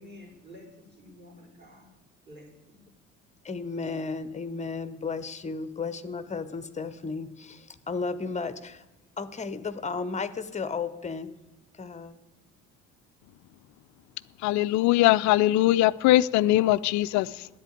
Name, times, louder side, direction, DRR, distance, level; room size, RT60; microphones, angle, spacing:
voice 1, 0.0-1.9 2.3-2.9, left 1 dB, 25° right, -2 dB, 4.9 m, -50 dB
voice 2, 3.4-8.8 9.2-11.3 11.8-12.1, left 4 dB, 15° left, 14 dB, 0.9 m, -34 dB
voice 3, 14.4-17.5, left 15 dB, 45° left, 17 dB, 0.5 m, -21 dB
10.0 x 8.2 x 9.6 m, 1.0 s
figure-of-eight pair, 55°, 41 cm